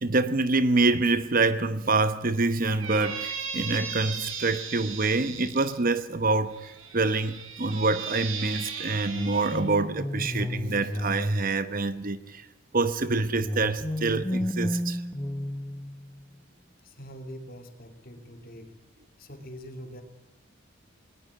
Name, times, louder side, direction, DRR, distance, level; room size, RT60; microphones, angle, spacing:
voice 1, 0.0-12.5 12.7-15.0, right 3 dB, 45° right, 1.0 m, -26 dB
Squeak, 2.6-5.7 6.5-9.6, right 5 dB, 80° right, 4.7 m, -37 dB
sound 1, 9.1-12.2 13.4-16.3, left 1 dB, 15° left, 0.9 m, -32 dB
voice 2, 16.8-18.7 19.2-20.0, equal, 45° left, 2.9 m, -43 dB
20.0 x 19.5 x 8.5 m
head